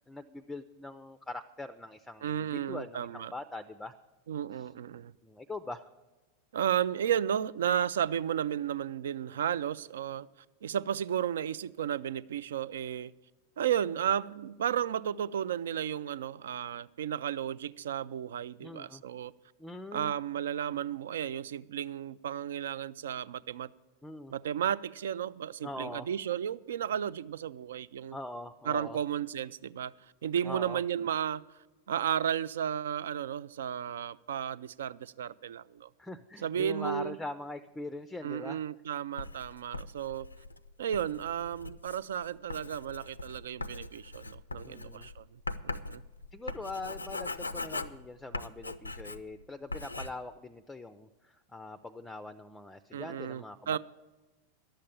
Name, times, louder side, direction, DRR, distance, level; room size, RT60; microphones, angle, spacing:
voice 1, 0.0-3.9 5.2-5.9 18.6-19.0 19.6-20.1 24.0-24.3 25.6-26.1 28.1-29.0 30.4-30.8 36.0-38.6 44.6-45.1 46.3-53.8, left 2 dB, 10° left, 12 dB, 0.4 m, -42 dB
voice 2, 2.2-3.3 4.3-5.1 6.5-10.3 10.6-13.1 13.6-19.3 19.9-23.7 24.3-28.2 28.6-29.9 30.2-31.4 31.9-35.9 36.4-37.2 38.2-40.3 40.8-46.0 52.9-53.8, right 9 dB, 60° right, 19 dB, 0.3 m, -33 dB
Writing, 39.2-49.4 49.7-50.1, left 2 dB, 80° left, 0.4 m, -41 dB
11.5 x 7.5 x 8.7 m, 1.2 s
figure-of-eight pair, 90°, 0 cm